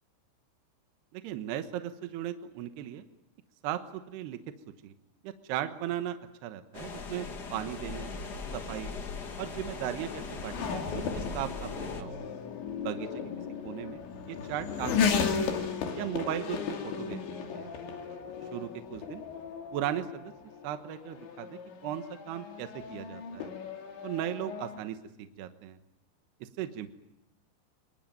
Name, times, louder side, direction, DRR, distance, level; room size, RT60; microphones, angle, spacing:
voice 1, 1.1-3.1 3.6-4.4 4.8-4.9 5.2-6.2 6.4-8.1 8.5-8.9 9.4-12.2 12.8-13.1 13.6-14.0 14.3-15.0 15.3-15.5 16.0-17.2 17.5-17.7 18.5-19.2 19.7-20.3 20.6-23.5 24.0-25.8 26.4-26.9, right 11 dB, 75° right, 8 dB, 3.1 m, -37 dB
sound 1, 6.7-12.0, left 4 dB, 65° left, 1.0 m, -40 dB
Race car auto racing / Accelerating revving vroom, 8.8-24.8, left 6 dB, 85° left, 5.0 m, -35 dB
25.5 x 23.5 x 9.2 m, 0.86 s
omnidirectional pair, 5.1 m